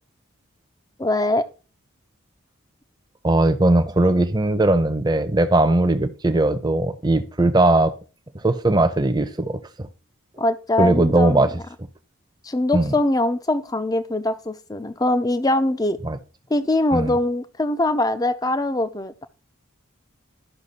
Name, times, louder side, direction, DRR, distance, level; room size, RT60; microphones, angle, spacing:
voice 1, 1.0-1.4 10.4-11.5 12.4-16.0 16.5-19.3, left 1 dB, 15° left, 12 dB, 0.5 m, -22 dB
voice 2, 3.2-7.9 8.4-9.9 10.8-11.5 12.7-12.9 16.0-16.2 16.9-17.1, right 2 dB, 20° right, 9 dB, 0.7 m, -19 dB
12.0 x 5.9 x 4.2 m, 0.36 s
head